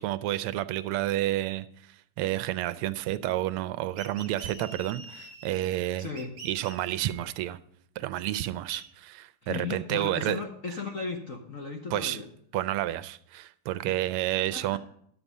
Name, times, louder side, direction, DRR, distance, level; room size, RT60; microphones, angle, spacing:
voice 1, 0.0-1.7 2.2-6.1 6.4-7.6 8.0-10.4 11.9-12.2 12.5-14.8, right 14 dB, 85° right, 1.5 m, -30 dB
sound 1, 4.0-5.8 6.2-7.3 8.7-8.8, right 4 dB, 45° right, 1.2 m, -45 dB
voice 2, 6.0-6.3 9.4-12.3 13.9-14.0 14.5-14.8, left 4 dB, 50° left, 1.0 m, -36 dB
11.5 x 7.1 x 5.4 m
omnidirectional pair, 2.4 m